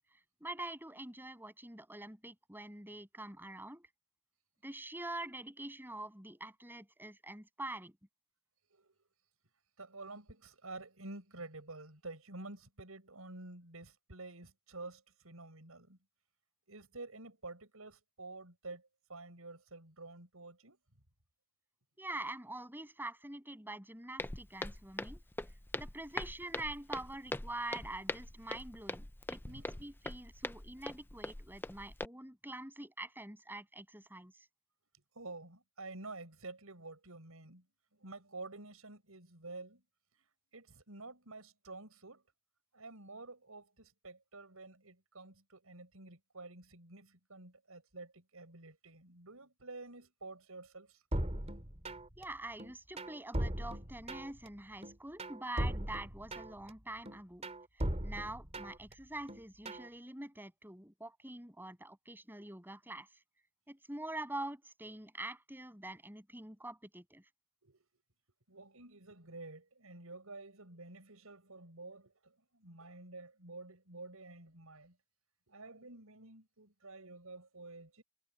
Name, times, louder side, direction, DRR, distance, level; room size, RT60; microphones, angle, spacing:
voice 1, 0.4-3.9 4.6-8.0 22.0-25.2 25.7-34.5 52.2-57.5 58.0-63.1 63.7-67.2, right 1 dB, 10° right, 7.4 m, -45 dB
voice 2, 9.8-16.0 16.7-20.8 29.5-29.8 35.1-37.7 37.9-39.8 40.5-42.2 42.7-51.0 67.6-67.9 68.5-75.0 75.5-78.0, right 2 dB, 85° right, 6.0 m, -50 dB
Walk footsteps, 24.2-32.0, left 2 dB, 10° left, 0.5 m, -42 dB
sound 1, 51.1-52.2 52.6-54.5 54.8-56.7 57.1-58.9 59.3-59.9, right 1 dB, 30° right, 3.0 m, -38 dB
head